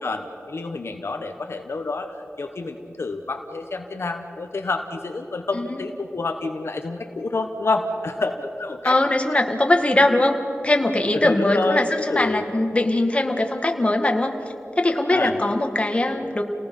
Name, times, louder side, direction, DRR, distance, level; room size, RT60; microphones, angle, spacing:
voice 1, 0.0-2.1 2.4-9.0 11.1-12.4 15.1-15.5, left 3 dB, 65° left, 5 dB, 1.1 m, -28 dB
voice 2, 5.5-5.8 8.8-10.4 10.6-14.4 14.8-16.4, left 1 dB, 25° left, 4 dB, 1.8 m, -21 dB
29.5 x 19.0 x 5.4 m, 2.8 s
wide cardioid pair, 80°, 5 cm